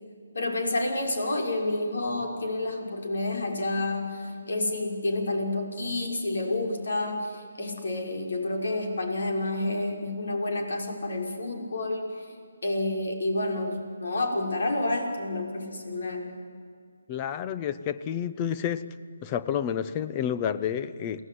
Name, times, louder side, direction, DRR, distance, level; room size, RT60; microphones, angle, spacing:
voice 1, 0.3-12.3 12.6-16.3, left 2 dB, 75° left, 3 dB, 6.0 m, -29 dB
voice 2, 17.1-18.8 19.2-21.2, left 9 dB, 20° left, 13 dB, 1.0 m, -30 dB
29.0 x 19.5 x 9.7 m, 2.2 s
hypercardioid pair, 160°, 0 cm